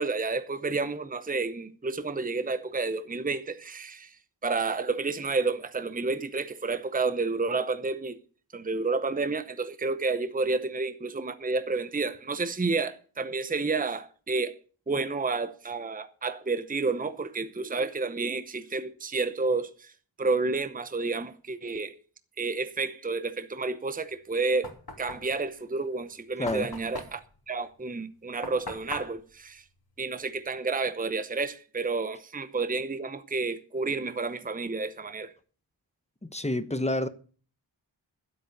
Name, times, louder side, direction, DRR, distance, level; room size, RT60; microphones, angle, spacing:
voice 1, 0.0-4.1 4.4-8.2 8.5-14.5 14.9-19.9 20.2-21.9 22.4-24.7 25.0-29.6 30.0-35.3, right 3 dB, 20° right, 0.8 m, -30 dB
Knock, 24.1-30.6, left 3 dB, 55° left, 3.0 m, -43 dB
voice 2, 26.4-26.7 36.2-37.1, left 1 dB, 15° left, 1.0 m, -29 dB
12.5 x 8.3 x 6.6 m
wide cardioid pair, 90°, 45 cm